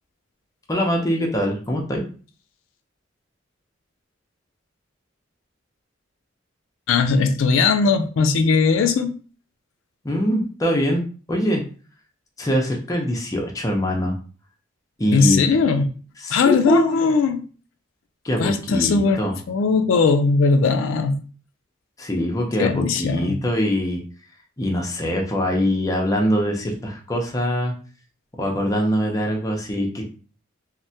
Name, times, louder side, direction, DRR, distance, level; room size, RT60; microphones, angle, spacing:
voice 1, 0.7-2.0 10.0-11.0 11.3-11.6 12.4-14.2 15.0-15.4 16.2-17.0 18.2-19.4 22.0-24.0 24.6-27.7 28.4-30.0, equal, 20° left, 0.5 m, -23 dB
voice 2, 6.9-9.1 15.1-15.9 16.3-17.4 18.4-21.2 22.6-23.4, left 4 dB, 85° left, 0.3 m, -19 dB
3.3 x 2.1 x 2.7 m
head